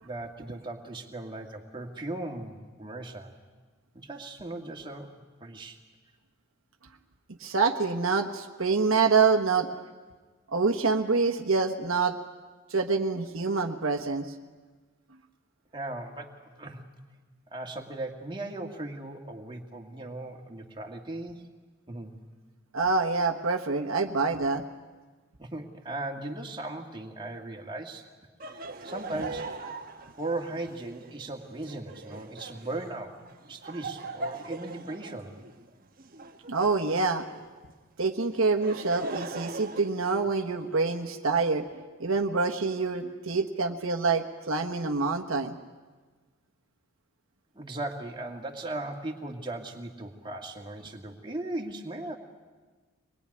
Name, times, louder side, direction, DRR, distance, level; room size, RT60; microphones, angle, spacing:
voice 1, 0.0-3.3 3.9-5.1 5.4-5.8 15.7-16.8 17.5-21.4 21.9-22.2 25.4-28.1 28.5-29.6 30.2-33.2 33.5-35.4 47.5-52.2, right 2 dB, 20° right, 1 dB, 2.0 m, -38 dB
voice 2, 7.4-9.7 10.5-12.2 12.7-14.3 22.7-24.6 36.5-37.3 38.0-41.7 42.0-45.6, right 4 dB, 70° right, 3 dB, 1.3 m, -26 dB
Laughter, 28.4-37.5 38.3-40.7, right 3 dB, 40° right, 1.2 m, -41 dB
24.0 x 21.0 x 9.8 m, 1.4 s
head